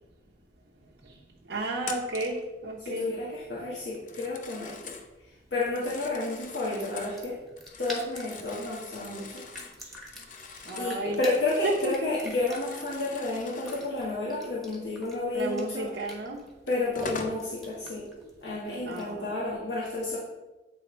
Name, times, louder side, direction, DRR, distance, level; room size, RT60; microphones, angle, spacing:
voice 1, 1.5-3.1 10.7-11.2 11.6-11.9 15.3-16.4 18.9-19.6, right 2 dB, 80° right, -4 dB, 0.9 m, -33 dB
Telephone, 1.8-2.4 3.9-5.1 5.6-7.2 7.6-12.1 12.3-13.9 16.0-16.1 16.7-17.4, left 4 dB, 50° left, 0.7 m, -43 dB
voice 2, 2.8-5.0 5.5-7.4 7.8-9.4 10.7-15.9 16.7-18.0 18.4-20.2, left 2 dB, 85° left, -7 dB, 1.5 m, -31 dB
sound 1, 4.4-19.2, equal, ahead, 1.2 m, -48 dB
8.9 x 3.5 x 4.4 m, 1.1 s
head